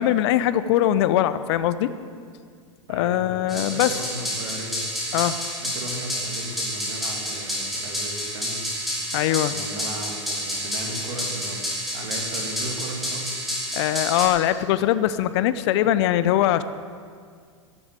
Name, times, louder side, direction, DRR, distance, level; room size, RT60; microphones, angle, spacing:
voice 1, 0.0-1.9 2.9-4.0 5.1-5.4 9.1-9.6 13.7-16.6, left 12 dB, 60° left, 14 dB, 0.7 m, -21 dB
voice 2, 2.9-4.8 5.6-8.8 9.5-11.6 11.9-13.3, right 2 dB, 65° right, 2 dB, 2.7 m, -36 dB
sound 1, 3.5-14.3, equal, ahead, 3.8 m, -29 dB
13.0 x 7.9 x 9.0 m, 2.1 s
hypercardioid pair, 95°, 16 cm